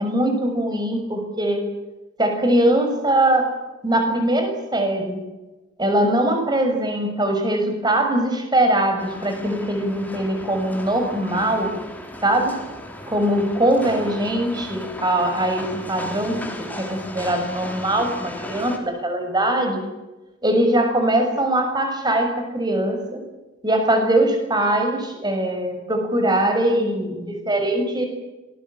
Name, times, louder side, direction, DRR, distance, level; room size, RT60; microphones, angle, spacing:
voice 1, 0.0-1.7 2.2-3.5 3.8-5.2 5.8-11.7 12.2-12.6 13.1-19.8 20.4-23.2 23.6-28.1, right 1 dB, 20° right, 5 dB, 6.4 m, -21 dB
sound 1, 9.0-18.8, left 1 dB, 10° left, 4.0 m, -36 dB
26.5 x 20.5 x 9.0 m, 1.1 s
head